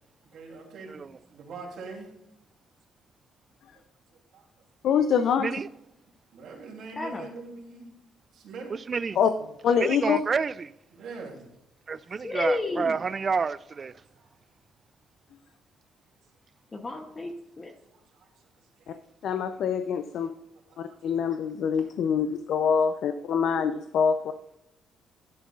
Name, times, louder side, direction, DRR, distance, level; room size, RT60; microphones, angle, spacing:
voice 1, 0.2-2.1 4.3-4.4 6.3-7.9 8.3-8.7 9.4-9.5 10.9-11.5 14.2-14.3 17.9-18.3 18.8-19.0 20.3-21.3 21.8-21.9, right 4 dB, 70° right, 3.2 m, -43 dB
voice 2, 4.8-5.5 9.2-9.3 9.6-10.2 19.2-20.3 20.8-24.3, left 7 dB, 70° left, 0.6 m, -25 dB
voice 3, 7.0-7.3 12.1-12.9 16.7-17.7, left 2 dB, 25° left, 1.0 m, -31 dB
voice 4, 8.7-9.2 9.8-10.7 11.9-13.9, right 5 dB, 35° right, 0.3 m, -29 dB
10.5 x 9.3 x 2.5 m
cardioid pair, 100°, 0 cm